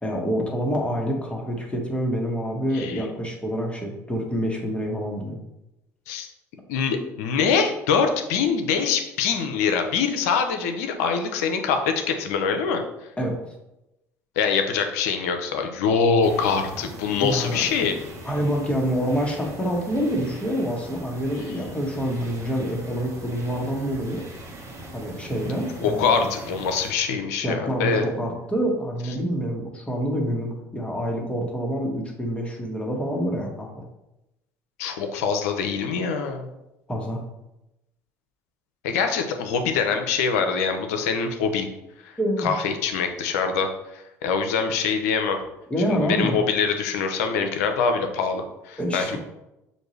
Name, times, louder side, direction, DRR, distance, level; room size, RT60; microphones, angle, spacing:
voice 1, 0.0-5.4 13.2-13.4 17.2-17.6 18.2-24.2 24.9-26.3 27.4-33.7 36.9-37.2 42.2-42.5 45.7-46.4 48.8-49.2, equal, 15° left, 0 dB, 1.4 m, -27 dB
voice 2, 2.7-3.0 6.1-6.3 6.7-12.8 14.4-18.0 25.8-28.1 34.8-36.5 38.8-41.7 42.0-42.1 42.4-45.4 45.9-49.2, left 5 dB, 75° left, 5 dB, 0.6 m, -24 dB
sound 1, 16.2-26.9, right 1 dB, 40° right, 1.3 m, -41 dB
6.4 x 2.6 x 3.2 m, 0.91 s
hypercardioid pair, 65°, 8 cm